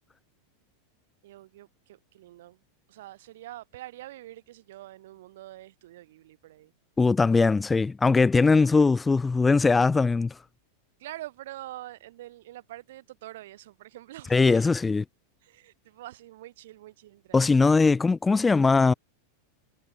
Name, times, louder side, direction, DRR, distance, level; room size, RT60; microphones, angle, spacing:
voice 1, 1.2-2.6 2.9-6.7 11.0-14.7 15.4-17.8, right 15 dB, 75° right, 3.9 m, -45 dB
voice 2, 7.0-10.3 14.3-15.0 17.3-18.9, left 4 dB, 15° left, 0.5 m, -20 dB
hypercardioid pair, 125°, 0 cm